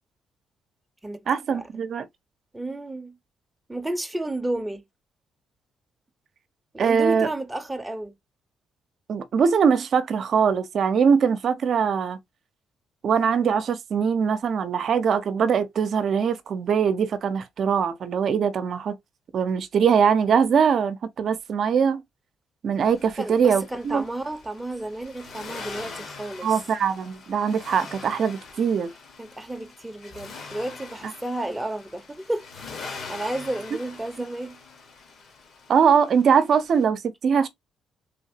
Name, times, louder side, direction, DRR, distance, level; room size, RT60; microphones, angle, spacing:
voice 1, 1.3-2.0 6.8-7.3 9.1-12.2 13.0-18.9 19.3-22.0 22.6-24.0 26.4-28.9 35.7-37.5, right 6 dB, 60° right, 0.6 m, -22 dB
voice 2, 2.5-3.2 3.7-4.8 6.7-8.1 23.2-26.6 29.2-32.7 33.1-34.6, right 1 dB, 10° right, 0.7 m, -32 dB
Accelerating revving vroom, 22.8-36.8, left 4 dB, 60° left, 1.4 m, -43 dB
3.5 x 2.8 x 2.7 m
cardioid pair, 90°, 0 cm